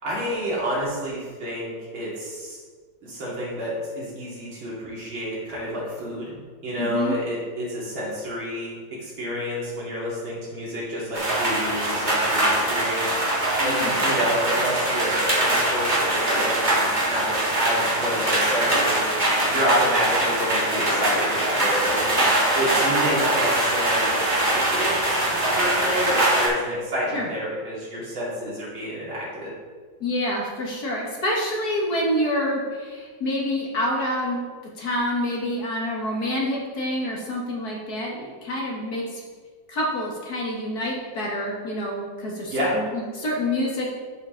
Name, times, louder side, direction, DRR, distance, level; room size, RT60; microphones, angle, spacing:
voice 1, 0.0-2.6 3.0-6.3 6.6-8.7 9.0-13.1 13.4-19.1 19.5-22.1 22.5-25.2 25.5-29.5 42.5-42.7, equal, 80° right, -7 dB, 3.4 m, -29 dB
voice 2, 6.8-7.2 13.6-14.3 27.1-27.3 30.0-39.2 39.7-43.9, left 1 dB, 50° left, -2 dB, 1.9 m, -27 dB
sound 1, 11.1-26.5, right 1 dB, 25° right, 2.0 m, -22 dB
10.5 x 5.7 x 3.9 m, 1.5 s
omnidirectional pair, 2.2 m